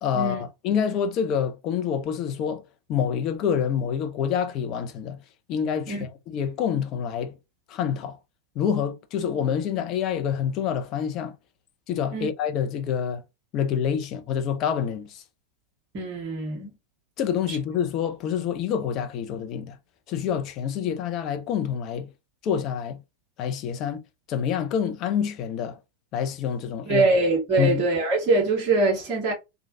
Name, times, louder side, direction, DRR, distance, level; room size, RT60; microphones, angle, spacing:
voice 1, 0.0-2.6 2.9-5.2 5.5-7.3 7.7-8.2 8.6-11.3 11.9-13.2 13.5-15.2 17.2-19.8 20.1-22.1 22.4-23.0 23.4-24.0 24.3-25.8 26.1-27.1 27.6-27.8, left 8 dB, 35° left, 0.6 m, -27 dB
voice 2, 15.9-16.7 17.5-17.6 26.9-29.3, right 2 dB, 35° right, 1.5 m, -23 dB
3.1 x 2.3 x 2.6 m
figure-of-eight pair, 90°, 0 cm